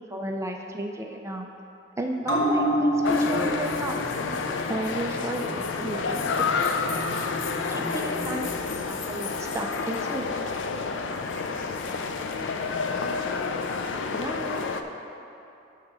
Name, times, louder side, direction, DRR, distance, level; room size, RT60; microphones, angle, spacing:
voice 1, 0.0-1.5 2.0-4.3 4.7-6.5 7.7-10.3 14.1-14.7, right 1 dB, 15° right, 2 dB, 0.4 m, -33 dB
sound 1, 2.2-9.2 9.5-9.6, equal, 20° left, 1.2 m, -30 dB
sound 2, 3.0-14.8, left 4 dB, 85° left, 0.5 m, -29 dB
voice 2, 7.7-8.5 11.0-11.2 11.6-12.1 12.4-13.0, left 1 dB, 50° left, 3 dB, 0.7 m, -43 dB
11.0 x 3.7 x 6.1 m, 2.8 s
head